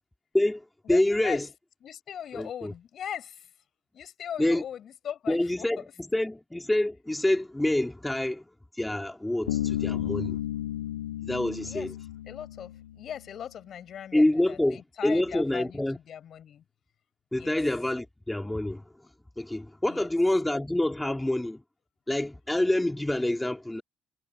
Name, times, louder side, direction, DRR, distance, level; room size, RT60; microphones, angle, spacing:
voice 1, 0.3-1.5 2.3-2.7 4.4-4.6 5.3-8.5 8.8-10.4 11.2-11.9 14.1-16.0 17.3-18.8 19.4-21.6 22.1-23.8, left 1 dB, 10° left, 3.5 m, -27 dB
voice 2, 0.9-1.4 1.8-3.5 3.9-5.7 11.7-11.9 12.3-16.6 17.3-17.6 19.9-20.1, left 9 dB, 55° left, 7.1 m, -39 dB
Bass guitar, 9.5-13.2, left 12 dB, 85° left, 2.9 m, -33 dB
hypercardioid pair, 45°, 0 cm